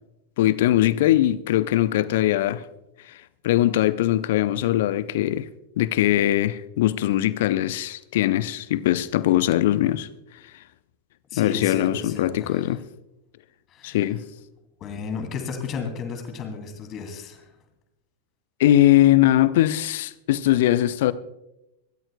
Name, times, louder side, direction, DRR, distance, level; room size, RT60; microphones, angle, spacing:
voice 1, 0.4-2.6 3.4-5.5 5.8-10.1 11.3-12.8 13.8-14.2 18.6-21.1, left 13 dB, 55° left, 0.7 m, -21 dB
voice 2, 11.3-12.8 13.7-14.1 14.8-17.5, left 5 dB, 30° left, 2.9 m, -33 dB
25.0 x 13.5 x 2.3 m
figure-of-eight pair, 90°, 0 cm